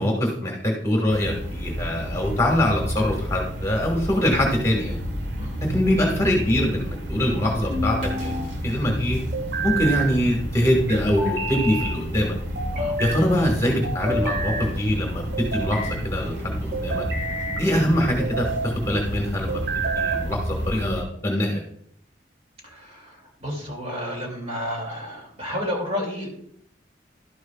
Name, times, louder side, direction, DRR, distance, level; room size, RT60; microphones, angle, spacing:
voice 1, 0.0-5.0 5.7-9.2 9.6-12.3 13.0-15.8 16.0-17.0 17.6-18.5 18.9-19.6 19.9-21.6, left 1 dB, 15° left, 1 dB, 1.5 m, -23 dB
sound 1, 1.1-21.0, equal, 90° right, 1.4 m, -31 dB
sound 2, 5.7-6.3 7.7-8.5 9.3-10.1 11.2-12.0 12.5-13.2 13.8-14.7 15.3-16.0 16.7-17.7 18.2-18.7 19.5-20.3, right 2 dB, 65° right, 1.8 m, -29 dB
voice 2, 22.6-26.4, left 1 dB, 35° right, 0 dB, 2.4 m, -31 dB
12.0 x 9.4 x 2.3 m, 0.66 s
head